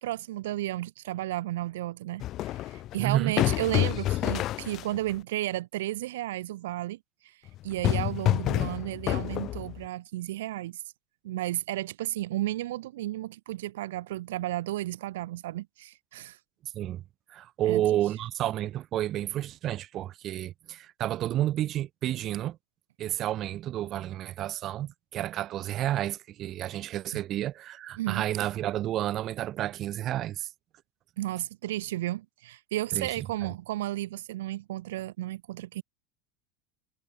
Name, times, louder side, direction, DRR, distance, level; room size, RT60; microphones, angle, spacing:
voice 1, 0.0-7.0 7.2-7.3 7.6-10.8 11.2-16.4 17.6-17.8 27.1-27.2 28.0-28.2 31.2-35.8, right 15 dB, 90° right, 1.6 m, -33 dB
sound 1, 2.2-5.1 7.5-9.9, left 14 dB, 35° left, 2.0 m, -28 dB
voice 2, 3.0-3.3 16.6-17.0 17.3-22.6 23.0-30.5 32.9-33.1 33.4-33.5, right 13 dB, 30° right, 1.7 m, -30 dB
supercardioid pair, 160°, 0 cm